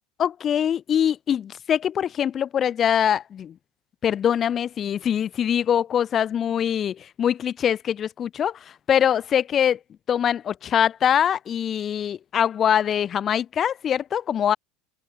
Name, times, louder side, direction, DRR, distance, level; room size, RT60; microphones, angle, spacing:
voice 1, 0.2-3.5 4.0-9.8 10.1-14.6, left 9 dB, 35° left, 4.8 m, -23 dB
open air
figure-of-eight pair, 75°, 0 cm